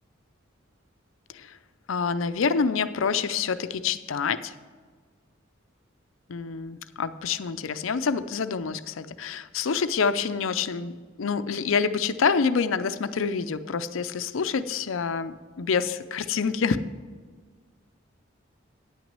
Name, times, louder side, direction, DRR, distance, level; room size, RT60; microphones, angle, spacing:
voice 1, 1.9-4.5 6.3-16.8, left 5 dB, 80° left, 12 dB, 0.5 m, -27 dB
9.6 x 6.2 x 7.4 m, 1.5 s
head